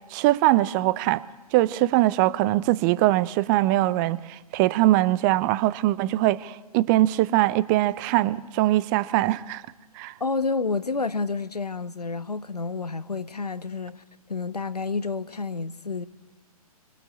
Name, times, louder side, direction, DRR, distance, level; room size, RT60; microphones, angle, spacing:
voice 1, 0.1-1.2 1.5-9.6 10.0-10.1, right 16 dB, 30° right, 0.9 m, -22 dB
voice 2, 10.2-14.0 14.3-16.1, left 4 dB, 85° left, 1.3 m, -29 dB
26.5 x 25.0 x 8.6 m
figure-of-eight pair, 120°, 20 cm